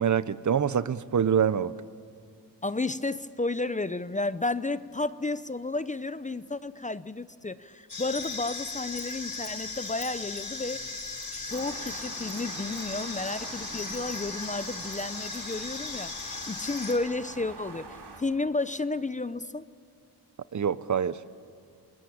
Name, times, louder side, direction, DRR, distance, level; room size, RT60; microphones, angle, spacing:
voice 1, 0.0-1.7 20.5-21.2, right 8 dB, 45° right, 0.8 m, -25 dB
voice 2, 2.6-10.8 11.3-19.7, left 2 dB, 20° left, 0.6 m, -32 dB
sound 1, 7.9-16.9, left 3 dB, 55° left, 6.7 m, -37 dB
sound 2, 11.5-18.2, right 4 dB, 75° right, 4.1 m, -45 dB
29.0 x 21.0 x 8.7 m
cardioid pair, 85°, 41 cm